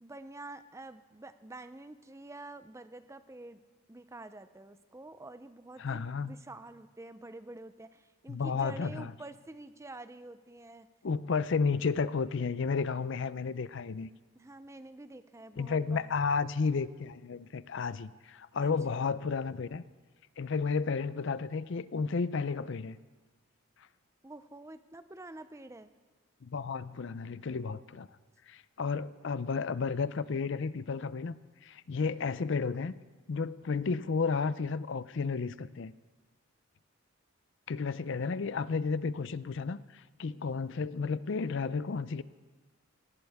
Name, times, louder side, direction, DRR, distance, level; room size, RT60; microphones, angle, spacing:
voice 1, 0.0-3.6 3.9-10.9 14.4-16.2 18.6-18.7 24.2-25.9 37.9-38.0 40.2-40.4, right 2 dB, 15° right, 12 dB, 0.5 m, -48 dB
voice 2, 5.8-6.4 8.3-9.1 11.0-14.1 15.6-19.9 20.4-23.0 26.4-28.1 28.5-31.4 31.6-32.9 33.3-35.9 37.7-42.2, left 5 dB, 55° left, 16 dB, 0.5 m, -32 dB
18.5 x 18.0 x 3.5 m, 1.4 s
head